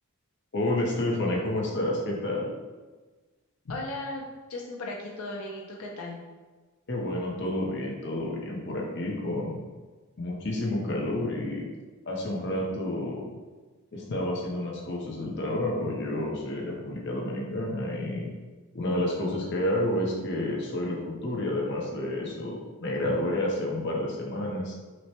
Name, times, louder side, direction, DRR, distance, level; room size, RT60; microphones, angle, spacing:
voice 1, 0.5-2.5 6.9-9.6 10.2-11.6 12.0-13.2 13.9-18.3 18.7-24.7, left 1 dB, 55° left, -2 dB, 0.8 m, -30 dB
voice 2, 3.7-4.2 4.5-6.2, left 2 dB, 90° left, -1 dB, 0.6 m, -36 dB
6.0 x 2.2 x 2.9 m, 1.3 s
head